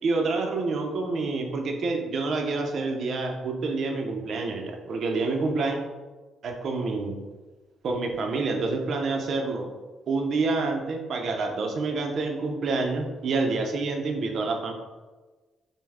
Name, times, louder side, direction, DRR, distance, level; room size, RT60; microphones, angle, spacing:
voice 1, 0.0-5.8 6.4-7.2 7.8-9.7 10.1-14.7, right 3 dB, 60° right, 3 dB, 0.7 m, -27 dB
5.4 x 2.2 x 3.5 m, 1.3 s
cardioid pair, 90°, 0 cm